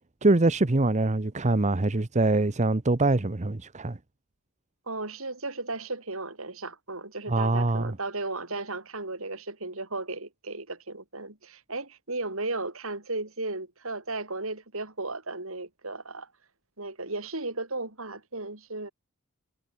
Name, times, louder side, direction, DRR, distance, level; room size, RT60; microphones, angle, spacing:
voice 1, 0.2-4.0 7.3-8.0, right 2 dB, 30° right, 0.9 m, -24 dB
voice 2, 4.9-16.3 16.8-18.9, right 2 dB, 65° right, 5.9 m, -35 dB
head